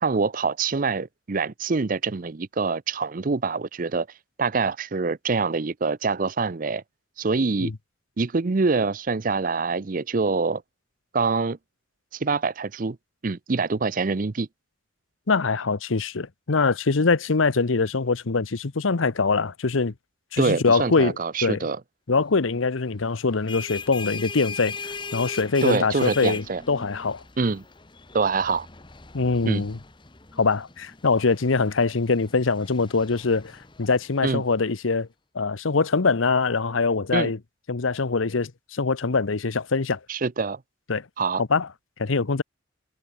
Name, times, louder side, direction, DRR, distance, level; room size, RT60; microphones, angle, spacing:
voice 1, 0.0-4.1 4.4-6.8 7.2-7.7 8.2-10.6 11.1-11.6 12.1-13.0 13.2-14.5 20.4-21.8 25.6-26.6 27.4-27.6 28.1-28.7 29.4-29.6 34.2-34.4 37.1-37.3 40.1-40.6 41.2-41.4, right 4 dB, 45° right, 0.6 m, -25 dB
voice 2, 15.3-19.9 20.3-21.2 21.4-21.6 22.1-24.8 25.1-27.2 29.1-29.8 30.4-35.1 35.3-37.4 37.7-40.0 40.9-41.0 41.4-41.7 42.0-42.4, left 4 dB, 85° left, 0.9 m, -23 dB
sound 1, 23.2-34.5, left 4 dB, 25° left, 1.3 m, -39 dB
head